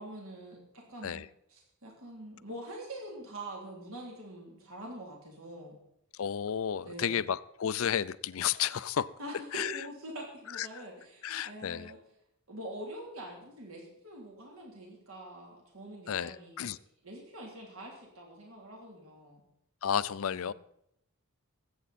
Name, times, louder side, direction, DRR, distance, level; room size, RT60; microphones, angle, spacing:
voice 1, 0.0-5.8 6.8-7.2 9.2-12.0 12.5-16.7 17.0-19.4 20.3-20.5, right 1 dB, 65° right, -1 dB, 3.3 m, -45 dB
voice 2, 6.2-9.1 9.5-9.7 10.5-10.7 11.2-11.9 16.1-16.8 19.8-20.5, left 8 dB, 65° left, 18 dB, 0.4 m, -32 dB
20.5 x 8.5 x 4.2 m, 0.76 s
head